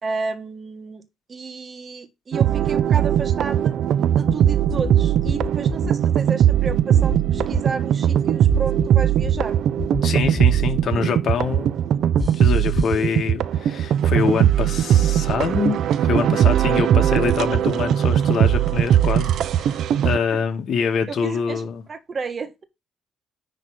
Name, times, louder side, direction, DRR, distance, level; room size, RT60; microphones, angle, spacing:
voice 1, 0.0-1.0 1.3-3.8 4.1-9.6 20.0-20.4 21.1-22.6, right 4 dB, 40° right, 1.6 m, -32 dB
sound 1, 2.3-20.2, right 10 dB, 75° right, 0.6 m, -19 dB
sound 2, 4.3-4.9 5.3-5.9 6.7-7.6 8.5-9.5 9.8-10.4 12.2-13.0, left 4 dB, 35° left, 0.4 m, -28 dB
voice 2, 10.0-11.7 12.4-21.8, left 6 dB, 60° left, 2.0 m, -25 dB
10.5 x 3.6 x 5.7 m
cardioid pair, 90°, 0 cm